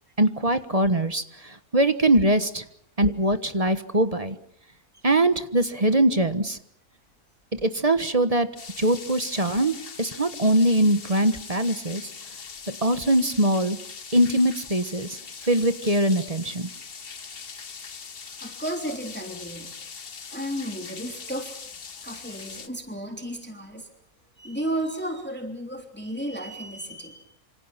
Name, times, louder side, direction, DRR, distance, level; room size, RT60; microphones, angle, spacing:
voice 1, 0.2-2.6 3.0-4.4 5.0-6.6 7.5-8.5 8.8-12.1 12.7-13.8 14.1-16.7, right 1 dB, 25° right, 10 dB, 1.3 m, -22 dB
sound 1, 8.6-22.7, left 5 dB, 40° left, 1.3 m, -41 dB
voice 2, 18.4-19.7 20.3-21.6 22.0-23.9 24.4-27.3, right 1 dB, 5° left, 3 dB, 3.3 m, -33 dB
28.0 x 27.0 x 5.9 m, 0.68 s
omnidirectional pair, 1.6 m